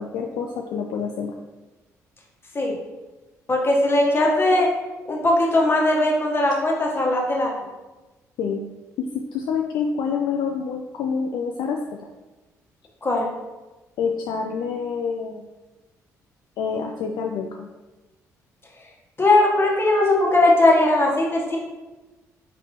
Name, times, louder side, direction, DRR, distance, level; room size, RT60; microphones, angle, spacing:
voice 1, 0.0-1.3 8.4-8.6 9.0-11.8 14.0-15.4 16.6-17.7, left 6 dB, 55° left, 2 dB, 0.4 m, -27 dB
voice 2, 3.5-4.7 5.1-7.5 13.0-13.3 19.2-21.6, left 2 dB, 25° left, -2 dB, 1.2 m, -19 dB
4.4 x 4.0 x 3.0 m, 1.1 s
figure-of-eight pair, 45°, 9 cm